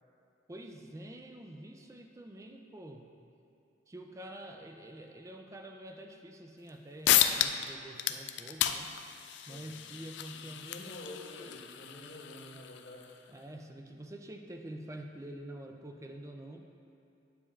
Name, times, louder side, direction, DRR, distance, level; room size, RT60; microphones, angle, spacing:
voice 1, 0.5-3.1 3.9-8.9 9.5-11.5 13.3-16.7, right 1 dB, 15° right, 4 dB, 0.4 m, -47 dB
sound 1, 6.7-6.8 7.0-7.7 8.0-13.1, left 11 dB, 65° left, 0.3 m, -32 dB
voice 2, 9.5-10.0 10.3-13.2, left 1 dB, 80° left, -11 dB, 1.4 m, -49 dB
9.6 x 7.0 x 2.4 m, 2.8 s
head